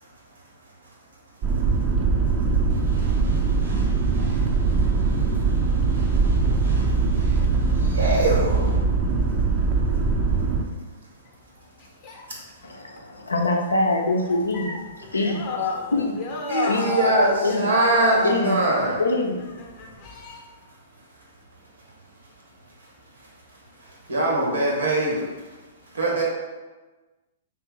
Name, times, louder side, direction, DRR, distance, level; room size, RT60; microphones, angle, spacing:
sound 1, 1.4-10.6, right 4 dB, 35° right, 0.5 m, -21 dB
sound 2, 2.7-8.8, right 2 dB, 65° right, 1.0 m, -40 dB
voice 1, 7.7-8.7 16.5-19.0 24.1-25.2 25.9-26.2, right 2 dB, 80° right, -3 dB, 1.3 m, -22 dB
voice 2, 12.6-14.7 15.1-15.4 15.9-16.1 16.7-16.8 17.4-17.7 18.2-18.5 19.0-19.4, left 2 dB, 85° left, 1 dB, 0.6 m, -23 dB
voice 3, 14.3-19.0 19.4-20.4, left 4 dB, 40° left, 0 dB, 0.8 m, -31 dB
3.2 x 2.9 x 3.8 m, 1.2 s
figure-of-eight pair, 115°, 0 cm